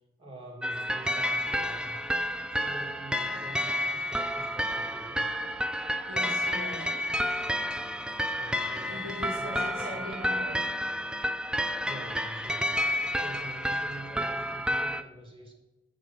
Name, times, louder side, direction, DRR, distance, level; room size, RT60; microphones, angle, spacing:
voice 1, 0.2-2.0 2.5-5.2 8.3-10.1 11.8-12.8 13.1-15.5, right 1 dB, 25° right, 2.2 m, -45 dB
sound 1, 0.6-15.0, equal, 5° right, 0.4 m, -30 dB
voice 2, 6.0-7.1 8.8-10.6 14.1-14.4, left 1 dB, 60° right, 4.8 m, -40 dB
14.5 x 6.8 x 5.9 m
head